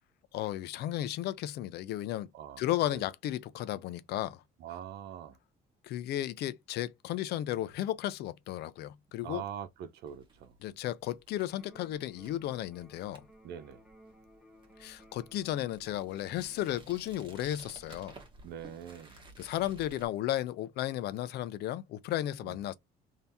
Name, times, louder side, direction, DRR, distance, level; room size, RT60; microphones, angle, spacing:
voice 1, 0.3-2.3 2.6-4.4 5.8-9.4 10.6-13.3 14.8-18.1 19.4-22.7, left 13 dB, 75° left, 0.5 m, -34 dB
voice 2, 4.6-5.4 9.2-10.6 13.4-13.8 18.4-19.2 22.4-22.7, right 9 dB, 75° right, 0.9 m, -43 dB
sound 1, 10.1-20.1, right 3 dB, 30° right, 1.4 m, -56 dB
Electric guitar, 11.6-19.5, right 1 dB, 5° right, 1.2 m, -60 dB
3.4 x 2.8 x 4.1 m
cardioid pair, 110°, 17 cm